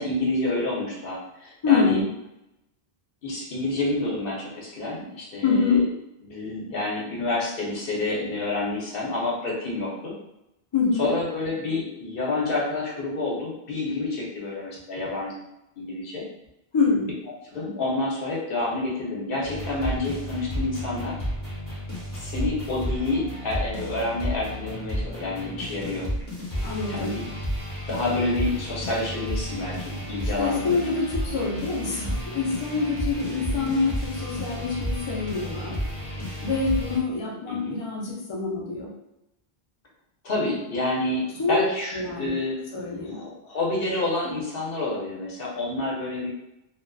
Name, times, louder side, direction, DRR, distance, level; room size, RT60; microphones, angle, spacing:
voice 1, 0.0-2.0 3.2-5.8 6.2-10.1 11.0-15.3 15.8-16.2 17.5-21.2 22.1-26.1 26.9-27.3 27.9-30.9 37.5-37.8 40.2-42.6 43.0-46.3, left 2 dB, 65° left, -4 dB, 0.9 m, -28 dB
voice 2, 1.6-2.1 5.4-5.8 10.7-11.1 16.7-17.1 26.6-27.2 30.4-35.8 36.4-38.9 41.4-41.6 41.9-42.3 42.7-43.2, left 4 dB, 40° left, -4 dB, 0.4 m, -25 dB
sound 1, 19.4-37.0, equal, 20° left, 0.9 m, -32 dB
2.4 x 2.3 x 2.3 m, 0.85 s
omnidirectional pair, 1.0 m